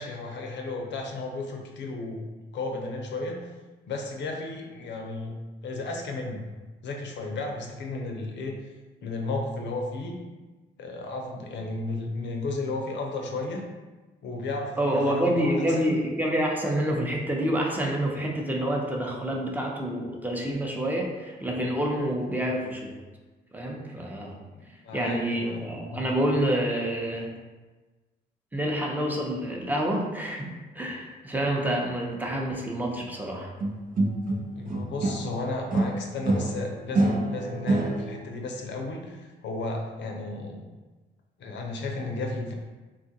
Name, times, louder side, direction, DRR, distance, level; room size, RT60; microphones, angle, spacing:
voice 1, 0.0-2.2 2.5-3.5 3.9-5.3 5.6-6.4 6.8-8.6 9.0-10.2 10.8-13.7 14.2-15.9 22.3-22.5 24.6-25.6 25.9-26.0 34.6-40.7 41.4-42.5, left 2 dB, 65° left, 2 dB, 0.6 m, -34 dB
voice 2, 14.8-23.0 23.5-24.4 24.9-27.3 28.5-30.5 30.7-33.5, right 1 dB, 10° right, -1 dB, 0.7 m, -27 dB
sound 1, 33.6-35.4 35.7-38.3, right 2 dB, 45° right, 0.6 m, -26 dB
3.7 x 2.4 x 2.7 m, 1.2 s
supercardioid pair, 65°, 20 cm